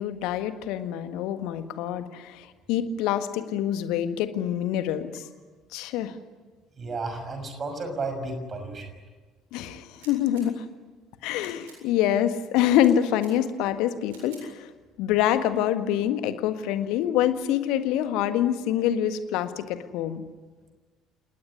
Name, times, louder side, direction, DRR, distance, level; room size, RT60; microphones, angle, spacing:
voice 1, 0.0-5.2 5.7-6.2 9.5-10.6 11.2-14.7 15.0-20.2, left 11 dB, 60° left, 10 dB, 1.7 m, -26 dB
voice 2, 6.8-8.9, right 3 dB, 35° right, 7 dB, 6.2 m, -33 dB
sound 1, 9.9-10.5 11.3-11.8 12.7-13.3 14.1-14.4, right 4 dB, 70° right, 7.5 m, -51 dB
29.0 x 19.5 x 9.9 m, 1.4 s
figure-of-eight pair, 55°, 0 cm